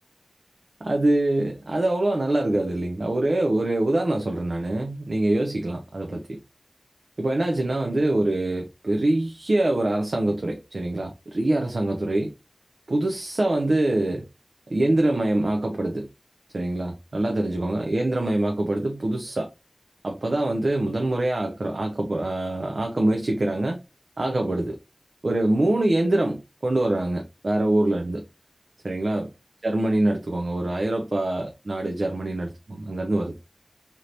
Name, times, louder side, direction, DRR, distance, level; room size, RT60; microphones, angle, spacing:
voice 1, 0.8-6.4 7.2-12.3 12.9-14.3 14.7-16.1 16.5-19.5 20.0-23.8 24.2-24.8 25.2-28.2 28.8-29.3 29.6-33.3, right 1 dB, 85° right, 0.4 m, -24 dB
3.2 x 2.8 x 2.6 m
wide cardioid pair, 45°, 0 cm